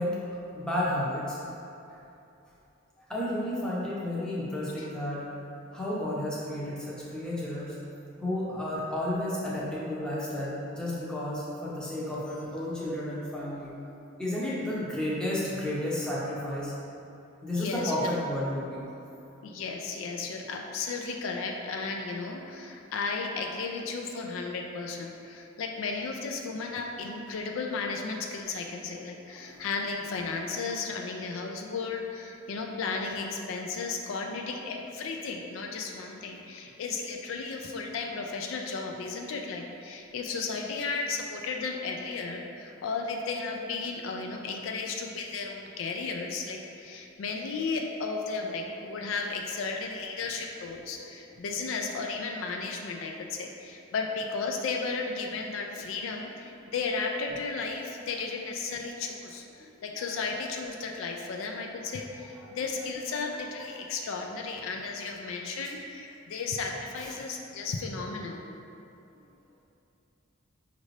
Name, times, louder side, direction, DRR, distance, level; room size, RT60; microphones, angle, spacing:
voice 1, 0.0-1.4 3.1-5.2 5.7-7.8 8.2-13.8 14.2-16.7 17.4-18.8 29.4-29.6 59.6-59.7 67.0-67.2, left 1 dB, 5° left, -7 dB, 0.7 m, -32 dB
voice 2, 17.5-18.1 19.4-68.4, left 4 dB, 70° left, 2 dB, 0.3 m, -34 dB
5.2 x 2.5 x 3.2 m, 2.8 s
head